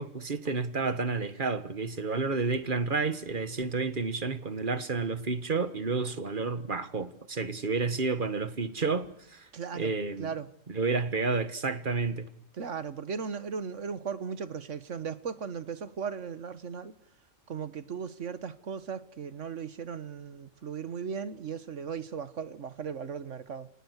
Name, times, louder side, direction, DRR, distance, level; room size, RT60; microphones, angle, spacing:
voice 1, 0.0-9.5 9.7-10.3 10.7-12.3, right 4 dB, 40° right, 1.6 m, -30 dB
voice 2, 9.5-9.9 10.2-10.5 12.5-16.9 17.5-23.7, right 6 dB, 70° right, 1.6 m, -37 dB
30.0 x 19.0 x 8.2 m
omnidirectional pair, 1.3 m